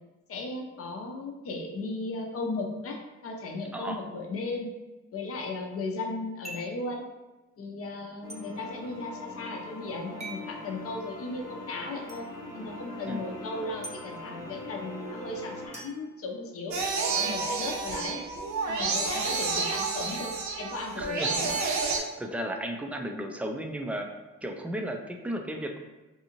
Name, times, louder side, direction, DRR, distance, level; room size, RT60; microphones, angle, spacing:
voice 1, 0.3-4.7 5.1-7.0 7.6-12.3 12.5-16.8 17.1-18.2 18.7-21.6, left 2 dB, 45° left, 1 dB, 0.6 m, -36 dB
sound 1, 6.4-6.8 8.3-8.4 10.2-10.5 12.1-12.2 13.8-14.0 15.7-16.8, right 2 dB, 20° right, 0.8 m, -43 dB
sound 2, 8.2-15.7, left 2 dB, 75° left, 0.9 m, -42 dB
sound 3, 16.7-22.0, right 4 dB, 60° right, 0.6 m, -30 dB
voice 2, 21.0-21.3 21.9-24.1 24.4-25.8, right 1 dB, 5° right, 3 dB, 0.4 m, -34 dB
2.7 x 2.5 x 2.8 m, 1.1 s
supercardioid pair, 55°, 33 cm